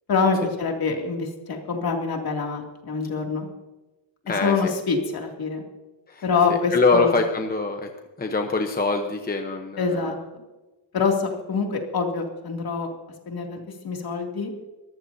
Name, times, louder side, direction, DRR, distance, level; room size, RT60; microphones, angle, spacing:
voice 1, 0.1-3.5 4.4-5.6 6.2-7.1 9.8-10.2 10.9-12.9 13.3-14.5, left 5 dB, 50° left, 2 dB, 2.6 m, -25 dB
voice 2, 4.2-4.7 6.1-6.2 6.5-7.9 8.2-10.2, left 3 dB, 20° left, 4 dB, 0.9 m, -24 dB
23.5 x 14.5 x 2.7 m, 1.1 s
wide cardioid pair, 165°, 47 cm